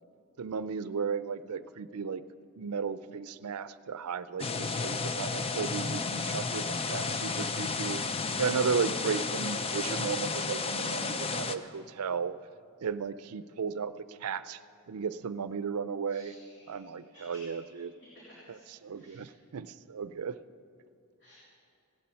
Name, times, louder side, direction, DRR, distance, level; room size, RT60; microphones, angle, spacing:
voice 1, 0.4-2.2 2.6-8.0 8.4-12.4 12.8-13.9 14.2-14.6 14.9-16.3 16.7-17.9 18.8-20.4, right 6 dB, 80° right, 14 dB, 0.5 m, -34 dB
sound 1, 4.4-11.6, left 4 dB, 25° left, 0.5 m, -32 dB
voice 2, 16.1-17.4 18.3-18.6 18.9-19.3 21.2-21.3, left 1 dB, 55° left, -8 dB, 3.4 m, -57 dB
16.5 x 12.0 x 5.7 m, 2.5 s
head